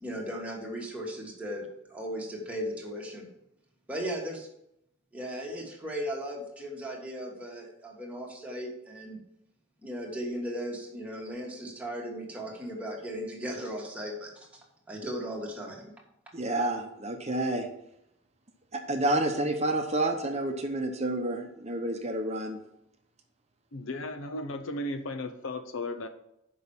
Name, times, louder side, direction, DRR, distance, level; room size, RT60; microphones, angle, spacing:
voice 1, 0.0-3.3 3.9-4.5 5.1-9.2 9.8-14.5 14.9-15.9, equal, 5° right, -2 dB, 1.6 m, -37 dB
voice 2, 16.3-17.7 18.7-22.6, right 1 dB, 35° right, 4 dB, 0.8 m, -29 dB
voice 3, 23.7-26.1, left 2 dB, 80° left, 8 dB, 0.7 m, -35 dB
6.3 x 5.5 x 7.1 m, 0.80 s
head